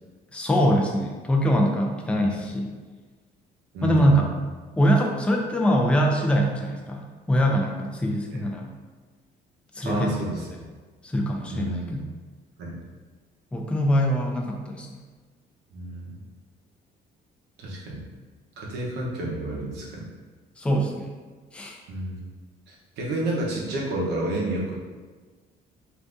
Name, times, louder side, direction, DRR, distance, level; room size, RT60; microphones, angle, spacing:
voice 1, 0.3-2.7 3.8-4.3 4.8-8.7 9.8-10.1 11.0-12.1 13.5-15.0 20.6-21.1 21.5-21.8, equal, 5° left, 0 dB, 0.4 m, -23 dB
voice 2, 3.7-4.2 9.8-10.6 11.5-11.9 12.6-12.8 15.7-16.2 17.6-18.0 18.6-20.1 21.9-22.3 22.7-24.7, right 1 dB, 85° right, -3 dB, 0.8 m, -30 dB
2.6 x 2.5 x 3.4 m, 1.4 s
cardioid pair, 110°, 17 cm